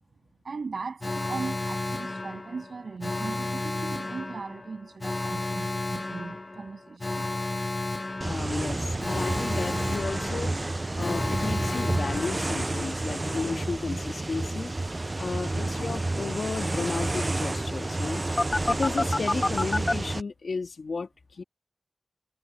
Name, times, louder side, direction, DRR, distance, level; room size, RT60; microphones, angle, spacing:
voice 1, 0.4-7.3, right 4 dB, 80° right, 6.6 m, -38 dB
Alarm, 1.0-12.9 18.4-19.9, left 2 dB, 35° left, 1.0 m, -31 dB
voice 2, 8.2-10.6 10.9-14.7 15.2-18.2 18.7-21.4, left 4 dB, 80° left, 1.7 m, -33 dB
sound 1, 8.2-20.2, right 2 dB, 35° right, 0.4 m, -30 dB
wide cardioid pair, 60°, 0 cm